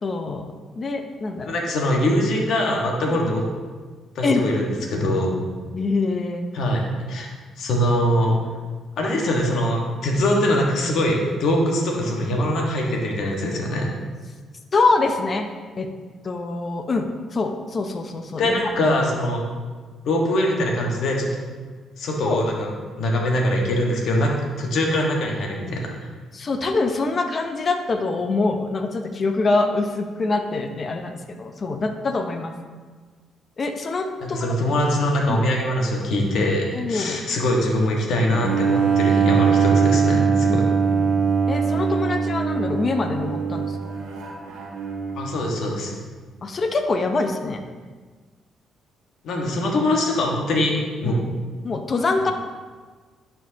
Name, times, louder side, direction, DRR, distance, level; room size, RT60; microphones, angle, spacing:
voice 1, 0.0-0.5 0.8-1.5 3.0-3.1 4.2-4.4 5.7-6.4 14.7-15.5 15.8-15.9 16.2-18.6 22.3-22.4 26.3-32.5 33.6-34.5 35.3-35.4 36.7-37.2 40.4-40.6 40.9-41.1 41.5-43.8 46.4-47.6 51.0-51.2 51.6-52.3, left 3 dB, 40° left, 5 dB, 0.7 m, -24 dB
voice 2, 1.4-3.4 4.1-5.4 6.5-7.3 7.6-8.4 9.0-13.9 18.4-19.4 20.0-21.3 22.0-22.7 23.0-25.9 34.2-40.7 45.2-46.0 49.2-51.2, left 1 dB, 70° left, 0 dB, 1.4 m, -22 dB
Bowed string instrument, 38.3-45.3, right 6 dB, 90° right, 1.1 m, -21 dB
11.0 x 4.5 x 2.8 m, 1.4 s
cardioid pair, 90°, 0 cm